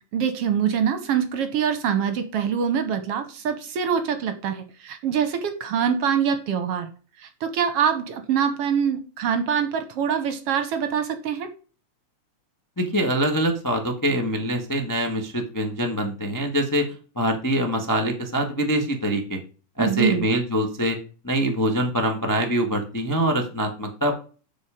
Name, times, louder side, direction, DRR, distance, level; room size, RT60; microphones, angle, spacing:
voice 1, 0.1-6.9 7.2-11.5 19.8-20.3, right 7 dB, 65° right, 9 dB, 1.7 m, -24 dB
voice 2, 12.8-16.9 17.1-19.4 19.8-21.0 21.2-24.1, equal, 30° left, 3 dB, 0.3 m, -24 dB
8.0 x 6.3 x 5.1 m, 0.36 s
omnidirectional pair, 3.4 m